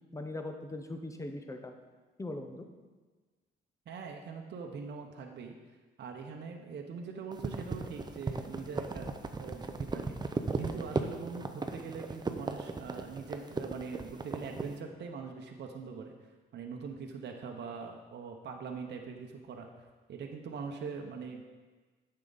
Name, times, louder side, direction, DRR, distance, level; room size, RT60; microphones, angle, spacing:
voice 1, 0.1-1.7 2.2-2.7, left 2 dB, 15° left, 5 dB, 0.9 m, -40 dB
voice 2, 3.9-5.5 6.0-9.1 9.4-10.2 10.5-16.1 16.5-19.7 20.1-21.4, right 5 dB, 60° right, 2 dB, 0.9 m, -42 dB
sound 1, 7.3-14.7, right 3 dB, 20° right, 0.7 m, -36 dB
8.9 x 6.6 x 4.0 m, 1.3 s
cardioid pair, 90°, 20 cm